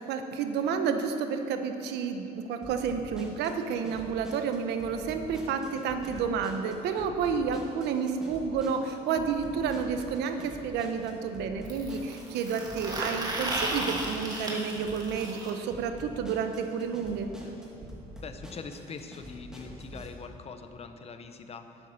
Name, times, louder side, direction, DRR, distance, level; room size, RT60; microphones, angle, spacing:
voice 1, 0.0-17.3, right 6 dB, 80° right, 7 dB, 0.9 m, -30 dB
sound 1, 2.6-20.1, equal, 5° right, 2.1 m, -46 dB
sound 2, 11.6-15.5 17.4-17.5 17.8-17.9 18.2-18.3 19.2-19.3, right 1 dB, 25° right, 1.9 m, -35 dB
voice 2, 18.2-21.9, left 5 dB, 35° left, 8 dB, 0.8 m, -43 dB
11.0 x 9.1 x 5.7 m, 2.9 s
cardioid pair, 110°, 17 cm